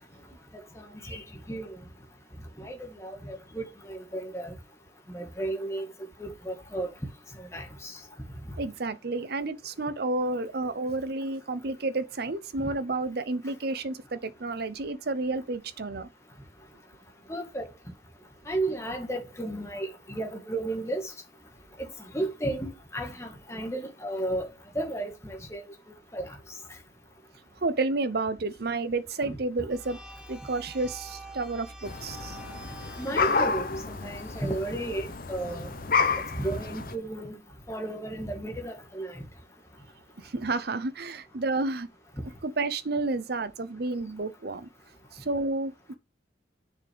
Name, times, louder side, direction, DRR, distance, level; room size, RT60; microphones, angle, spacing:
voice 1, 0.8-1.7 2.6-4.5 5.1-5.9 6.2-6.9 7.4-7.9 17.3-17.7 18.5-21.1 21.8-21.9 22.1-24.5 24.7-25.6 26.1-26.3 29.2-29.4 33.0-35.7 36.4-37.4 37.7-39.2, right 1 dB, 15° left, 1.7 m, -33 dB
voice 2, 8.6-16.1 27.6-30.0 30.3-32.4 40.2-41.9 42.4-44.7 45.1-45.9, right 3 dB, 55° right, 0.7 m, -31 dB
sound 1, 29.7-35.1, right 1 dB, 5° right, 1.3 m, -46 dB
sound 2, 31.9-37.0, left 4 dB, 50° left, 0.8 m, -30 dB
7.1 x 6.2 x 3.5 m
head